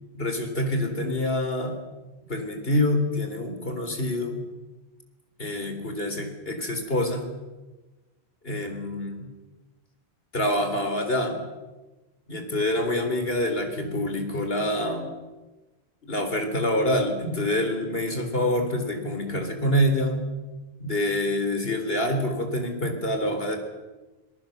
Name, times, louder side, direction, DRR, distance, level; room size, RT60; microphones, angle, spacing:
voice 1, 0.1-1.8 2.3-4.4 5.4-7.3 8.4-9.3 10.3-11.5 12.3-15.1 16.1-20.3 20.8-23.6, left 1 dB, 70° left, 5 dB, 4.1 m, -26 dB
26.0 x 22.0 x 6.7 m, 1.1 s
omnidirectional pair, 1.0 m